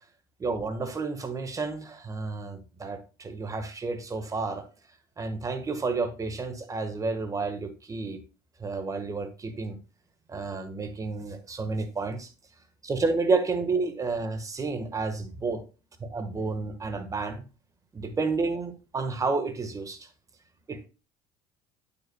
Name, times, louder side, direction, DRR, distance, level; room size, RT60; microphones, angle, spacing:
voice 1, 0.4-4.6 5.2-8.2 8.6-9.8 10.3-12.3 12.8-15.6 16.0-17.4 17.9-20.1 20.7-20.9, right 3 dB, 25° right, 1.4 m, -30 dB
8.7 x 7.1 x 2.3 m
supercardioid pair, 95°, 13 cm